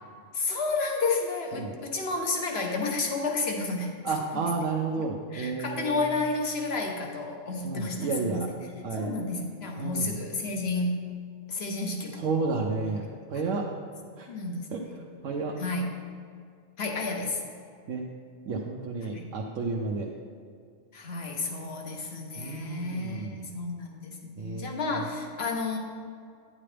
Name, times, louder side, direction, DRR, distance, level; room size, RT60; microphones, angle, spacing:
voice 1, 0.3-4.4 5.3-8.6 8.9-11.0 11.5-12.3 14.3-14.9 15.6-15.9 16.8-17.4 19.1-19.2 20.9-25.8, left 3 dB, 55° left, 2 dB, 1.2 m, -31 dB
voice 2, 4.0-5.9 7.6-8.5 8.8-9.1 9.8-10.1 12.2-13.0 13.3-13.6 14.2-14.3 14.7-14.8 15.2-15.5 17.9-18.1 18.5-20.1 22.4-23.4 24.4-24.8, right 4 dB, 90° right, -2 dB, 1.1 m, -31 dB
9.7 x 8.6 x 3.3 m, 2.2 s
omnidirectional pair, 1.3 m